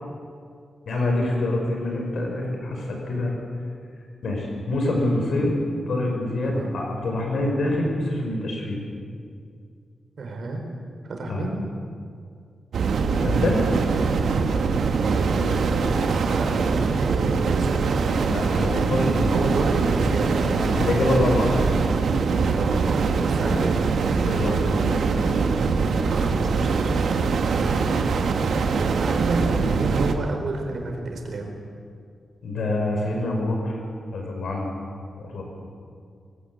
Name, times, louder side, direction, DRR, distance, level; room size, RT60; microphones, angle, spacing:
voice 1, 0.9-3.3 4.2-5.6 5.9-8.8 11.3-11.5 13.1-13.8 18.3-19.3 20.4-21.6 23.4-23.6 24.2-25.1 32.4-33.8 34.1-34.7 35.2-35.4, left 2 dB, 70° left, 1 dB, 5.7 m, -25 dB
voice 2, 6.4-6.8 10.2-10.6 11.1-11.6 15.1-17.9 19.3-20.3 22.5-23.9 26.0-27.8 28.9-31.6, right 2 dB, 60° right, 2 dB, 4.2 m, -30 dB
sound 1, 12.7-30.1, right 4 dB, 85° right, 1.5 m, -23 dB
23.5 x 16.5 x 8.1 m, 2.2 s
wide cardioid pair, 165°, 0 cm